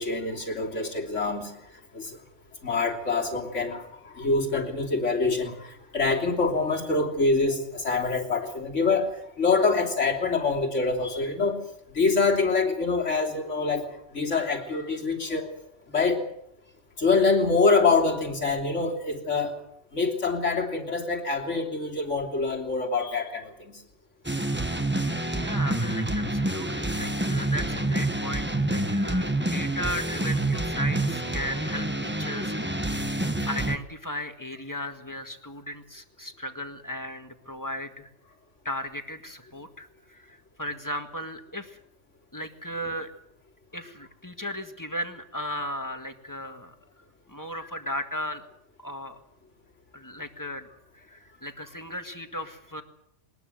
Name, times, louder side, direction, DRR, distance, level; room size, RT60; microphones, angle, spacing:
voice 1, 0.0-1.5 1.9-2.2 2.6-3.9 4.2-11.6 12.0-13.9 14.1-15.5 15.9-16.2 17.0-19.5 19.9-23.8, left 4 dB, 80° left, 2 dB, 3.5 m, -25 dB
sound 1, 24.2-33.8, right 1 dB, 10° right, 1.3 m, -27 dB
voice 2, 25.3-32.9 33.5-38.1 38.7-41.8 42.3-43.1 43.7-46.7 47.3-48.4 48.8-49.2 49.9-50.7 50.9-52.8, equal, 15° left, 6 dB, 1.9 m, -36 dB
21.5 x 20.0 x 7.9 m, 0.76 s
omnidirectional pair, 1.2 m